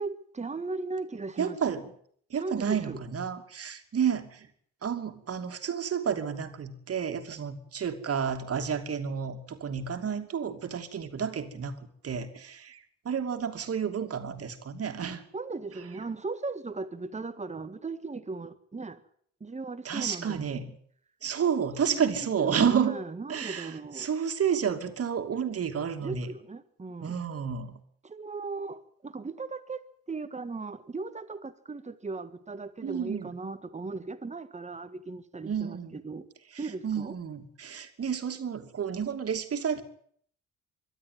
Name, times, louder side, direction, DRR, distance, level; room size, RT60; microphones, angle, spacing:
voice 1, 0.0-1.6 2.4-3.0 15.3-19.0 19.4-20.7 21.9-24.1 26.0-27.2 28.0-29.8 30.1-36.3 36.6-37.2, right 3 dB, 25° right, 1.7 m, -37 dB
voice 2, 1.4-1.9 2.3-4.5 4.8-15.2 19.8-20.7 21.2-23.0 23.3-26.3 27.0-27.8 32.8-33.3 35.5-36.0 36.5-39.8, right 7 dB, 50° right, 2.7 m, -31 dB
23.0 x 13.0 x 9.5 m
cardioid pair, 90°, 30 cm